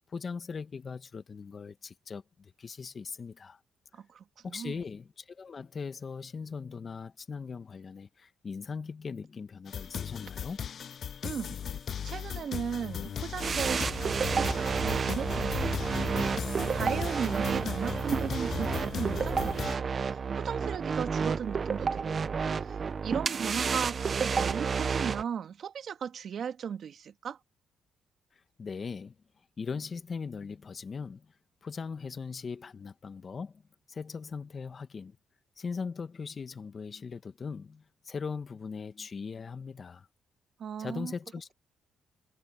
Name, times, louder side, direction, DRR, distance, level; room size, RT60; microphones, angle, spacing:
voice 1, 0.1-3.6 4.4-10.6 28.3-29.1 29.6-31.3 31.6-33.6 33.9-35.2 35.6-40.1 40.8-41.5, left 5 dB, 40° left, 1.6 m, -39 dB
voice 2, 3.9-4.8 11.2-22.3 22.6-27.4 40.6-41.1, right 7 dB, 60° right, 2.4 m, -37 dB
sound 1, 9.7-19.8, left 8 dB, 55° left, 0.6 m, -37 dB
sound 2, 13.4-25.2, right 5 dB, 40° right, 0.9 m, -30 dB
cardioid pair, 90°, 0 cm